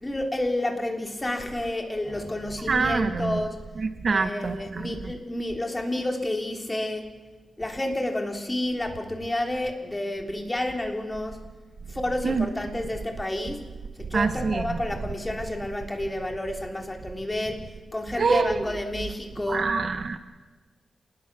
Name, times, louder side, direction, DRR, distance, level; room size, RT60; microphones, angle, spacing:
voice 1, 0.0-3.6 4.1-7.1 7.6-11.4 11.9-13.6 14.0-19.7, left 1 dB, 15° left, 3 dB, 3.4 m, -30 dB
voice 2, 2.7-3.4 3.8-4.9 12.2-12.5 14.1-14.8 18.2-18.6 19.5-20.2, right 4 dB, 50° right, 9 dB, 1.3 m, -25 dB
26.5 x 21.0 x 6.2 m, 1.2 s
wide cardioid pair, 110°, 0 cm